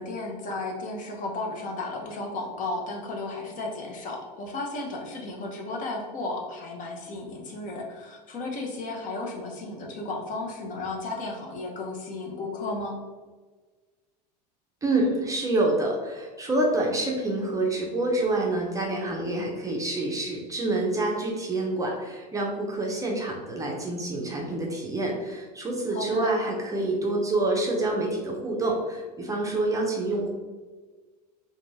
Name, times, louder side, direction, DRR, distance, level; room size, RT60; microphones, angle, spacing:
voice 1, 0.0-13.0 25.9-26.3, left 2 dB, 40° left, 1 dB, 0.6 m, -34 dB
voice 2, 14.8-30.3, right 2 dB, 15° right, -1 dB, 0.5 m, -27 dB
2.5 x 2.2 x 3.1 m, 1.4 s
hypercardioid pair, 95°, 21 cm